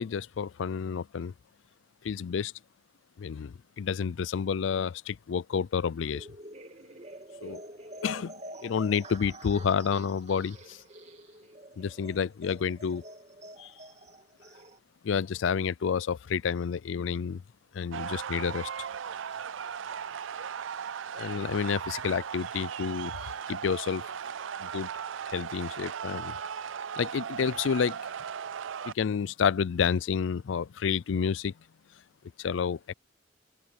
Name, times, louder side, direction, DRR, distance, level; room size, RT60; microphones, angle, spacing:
voice 1, 0.0-1.3 2.0-2.5 3.2-6.3 7.4-7.6 8.0-8.3 8.6-10.8 11.8-13.0 13.6-13.7 15.0-17.4 17.7-18.7 21.1-23.2 23.5-24.0 24.6-24.9 25.3-26.4 27.0-28.0 28.8-31.5 32.4-32.9, left 6 dB, 80° left, 0.4 m, -29 dB
sound 1, 6.1-14.8, right 1 dB, 35° right, 2.7 m, -47 dB
sound 2, 17.9-28.9, right 7 dB, 85° right, 0.5 m, -37 dB
open air
head